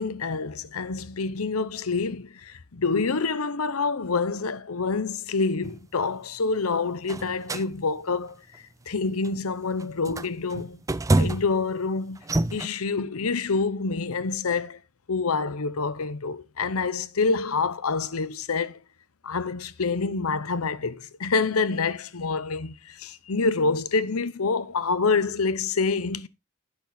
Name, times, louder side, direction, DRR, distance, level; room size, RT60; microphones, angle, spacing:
voice 1, 0.0-8.4 8.9-10.8 11.2-12.2 12.5-14.8 15.1-18.8 19.2-26.3, left 4 dB, 85° left, 0.8 m, -27 dB
sound 1, 5.6-5.8 7.1-7.7 8.3-8.6 9.2-9.4 9.8-11.6 12.2-12.7, right 2 dB, 15° right, 0.4 m, -26 dB
11.0 x 6.3 x 3.9 m
head